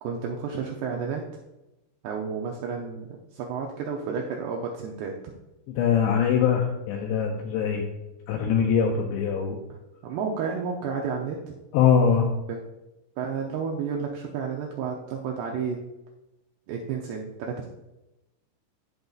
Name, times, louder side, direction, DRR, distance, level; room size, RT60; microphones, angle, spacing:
voice 1, 0.0-1.2 2.0-5.2 9.7-9.8 10.0-11.6 12.5-12.7 13.2-15.8 16.7-17.7, right 6 dB, 85° right, 0 dB, 2.3 m, -31 dB
voice 2, 5.8-7.9 8.3-9.6 11.7-12.3, left 7 dB, 85° left, 2 dB, 2.5 m, -22 dB
14.5 x 5.3 x 2.4 m, 0.98 s
omnidirectional pair, 5.6 m